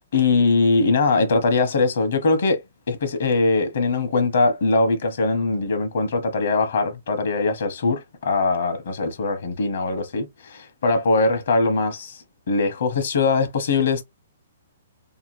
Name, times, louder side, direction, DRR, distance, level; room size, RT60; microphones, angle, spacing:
voice 1, 0.1-2.6 2.9-14.0, left 3 dB, 65° left, 0.9 m, -21 dB
2.8 x 2.2 x 3.0 m
hypercardioid pair, 150°, 0 cm